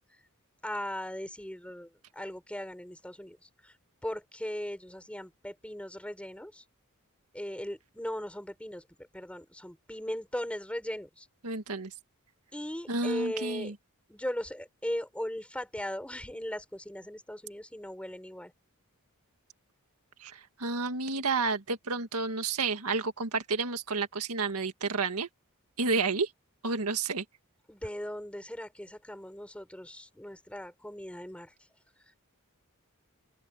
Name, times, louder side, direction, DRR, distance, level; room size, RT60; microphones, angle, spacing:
voice 1, 0.6-3.4 3.6-3.7 4.0-6.6 7.3-8.8 9.1-11.3 12.5-13.7 14.1-18.5 27.7-31.5, equal, 5° left, 4.7 m, -38 dB
voice 2, 11.4-11.9 12.9-13.7 20.2-25.3 25.8-26.3 26.6-27.2, right 4 dB, 90° right, 1.8 m, -30 dB
open air
head